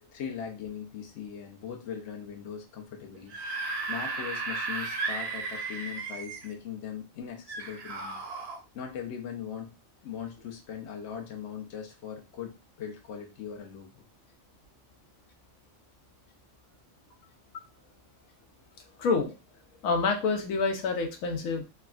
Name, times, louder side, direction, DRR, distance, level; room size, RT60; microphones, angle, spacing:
voice 1, 0.0-3.3 3.9-8.2 8.7-9.7 10.0-14.0, left 8 dB, 60° left, 2 dB, 0.9 m, -40 dB
Screaming / Screech, 3.1-6.5 7.5-8.6, right 3 dB, 60° right, 0.7 m, -34 dB
voice 2, 19.0-19.3 19.8-21.6, left 4 dB, 85° left, 3 dB, 1.0 m, -27 dB
3.4 x 2.1 x 2.3 m, 0.30 s
omnidirectional pair, 1.4 m